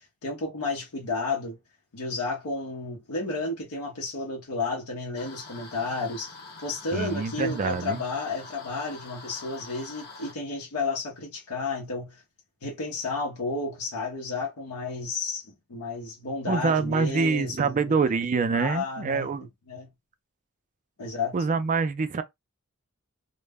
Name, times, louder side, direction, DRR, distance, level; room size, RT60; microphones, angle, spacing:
voice 1, 0.0-1.6 1.9-6.3 6.6-12.2 12.6-17.9 18.5-19.3 19.7-19.9 21.0-21.3, left 3 dB, 85° left, 0.7 m, -32 dB
sound 1, 5.1-10.3, left 3 dB, 50° left, 0.7 m, -45 dB
voice 2, 6.9-8.0 16.5-19.4 21.3-22.2, right 4 dB, 35° right, 0.3 m, -25 dB
2.0 x 2.0 x 3.4 m
head